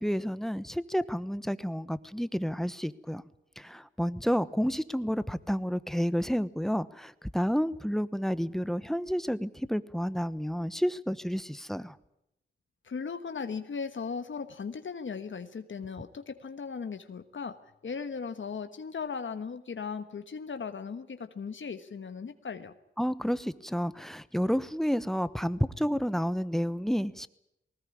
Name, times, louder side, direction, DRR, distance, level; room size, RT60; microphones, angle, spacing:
voice 1, 0.0-3.2 3.6-12.0 23.0-27.3, equal, ahead, 15 dB, 1.1 m, -30 dB
voice 2, 12.8-17.6 17.8-22.7, left 5 dB, 75° left, 9 dB, 1.3 m, -37 dB
20.0 x 19.0 x 9.7 m, 0.81 s
wide cardioid pair, 70°, 20 cm